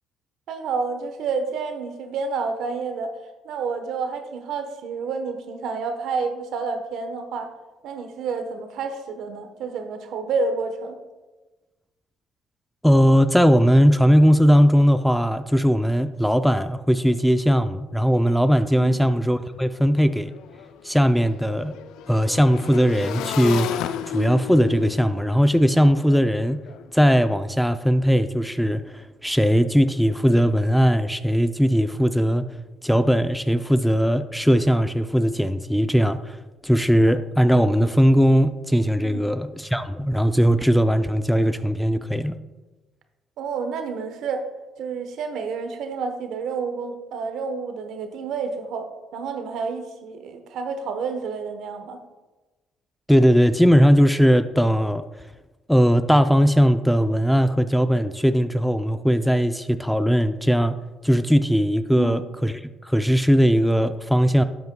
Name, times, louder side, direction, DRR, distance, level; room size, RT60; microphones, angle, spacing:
voice 1, 0.5-3.1 3.4-7.5 7.8-11.0 18.8-19.1 39.0-39.3 43.4-44.5 44.8-52.0 62.0-62.2, right 4 dB, 75° right, 7 dB, 1.0 m, -29 dB
voice 2, 12.8-20.4 20.8-21.8 22.1-26.6 26.9-32.5 32.8-36.4 36.6-42.4 53.1-55.0 55.7-60.8 61.0-64.4, equal, ahead, 10 dB, 0.4 m, -19 dB
Motorcycle / Engine, 19.3-19.4 19.7-26.8, left 10 dB, 80° left, 0.4 m, -33 dB
12.0 x 7.9 x 2.2 m, 1.2 s
supercardioid pair, 75°, 0 cm